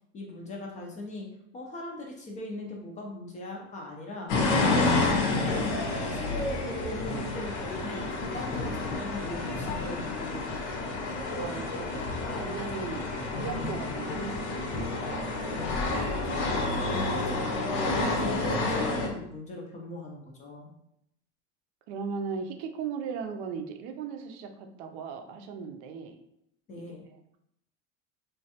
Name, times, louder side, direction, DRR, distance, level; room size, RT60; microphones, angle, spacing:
voice 1, 0.1-1.3 1.5-4.3 4.7-5.6 6.0-8.1 8.3-10.9 16.0-20.7 26.7-27.0, left 2 dB, 20° left, 0 dB, 0.3 m, -40 dB
sound 1, 4.3-19.1, left 2 dB, 75° left, 0.7 m, -29 dB
voice 2, 11.3-11.9 12.3-15.1 21.9-26.2 26.7-26.8, right 5 dB, 65° right, 6 dB, 0.5 m, -37 dB
3.2 x 2.2 x 2.7 m, 0.76 s
supercardioid pair, 140°, 35 cm